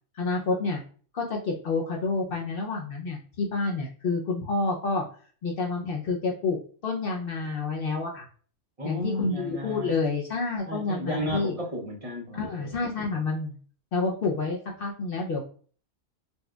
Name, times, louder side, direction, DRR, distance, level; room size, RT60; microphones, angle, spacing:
voice 1, 0.2-0.8 1.1-5.0 5.4-6.6 6.8-8.3 8.8-11.5 12.3-13.5 13.9-15.4, left 3 dB, 60° left, 0 dB, 0.7 m, -29 dB
voice 2, 8.8-9.9 10.7-13.2, equal, 35° right, 1 dB, 0.7 m, -34 dB
4.3 x 2.3 x 2.3 m, 0.43 s
omnidirectional pair, 1.2 m